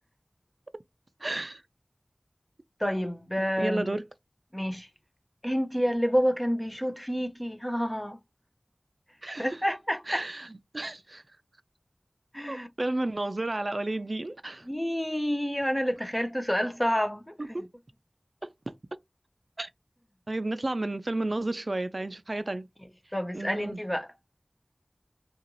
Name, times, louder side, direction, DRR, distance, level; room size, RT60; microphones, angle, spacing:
voice 1, 1.2-1.6 3.6-4.0 9.2-9.6 10.1-11.2 12.5-14.7 17.4-17.7 18.4-18.7 19.6-19.7 20.3-22.7 23.3-23.8, right 2 dB, 60° right, 0.3 m, -32 dB
voice 2, 2.8-4.0 4.5-4.9 5.4-8.2 9.4-10.2 12.3-12.7 14.6-17.3 23.1-24.1, equal, 15° left, 0.5 m, -28 dB
2.5 x 2.3 x 2.9 m
wide cardioid pair, 45°, 0 cm